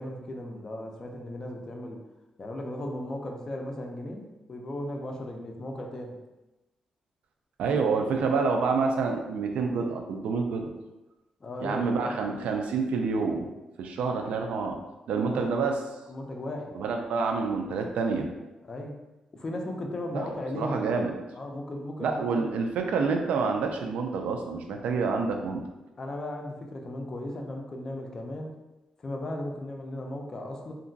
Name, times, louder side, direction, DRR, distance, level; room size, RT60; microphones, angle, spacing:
voice 1, 0.0-2.0 2.4-6.2 11.4-12.1 15.3-15.4 16.1-16.7 18.6-18.9 19.3-21.0 21.3-22.5 26.0-28.5 29.0-30.7, left 1 dB, 25° left, 2 dB, 0.3 m, -36 dB
voice 2, 7.6-10.7 11.6-13.5 13.8-14.8 15.1-15.8 16.7-18.3 20.1-20.3 20.5-21.1 22.0-25.6, right 4 dB, 90° right, 3 dB, 0.4 m, -28 dB
2.8 x 2.5 x 2.6 m, 1.0 s
wide cardioid pair, 175°, 2 cm